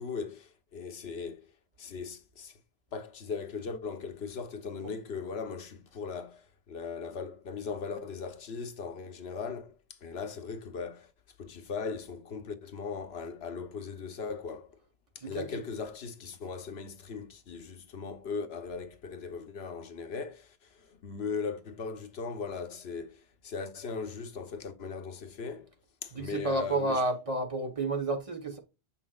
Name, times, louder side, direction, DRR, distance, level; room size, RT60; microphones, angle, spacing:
voice 1, 0.0-1.5 1.8-2.6 2.9-11.1 11.4-14.8 15.1-25.7 26.0-27.0, left 5 dB, 75° left, 1.1 m, -39 dB
voice 2, 15.2-15.6 26.1-28.6, right 2 dB, 35° right, 1.1 m, -31 dB
7.1 x 5.7 x 2.3 m
omnidirectional pair, 1.1 m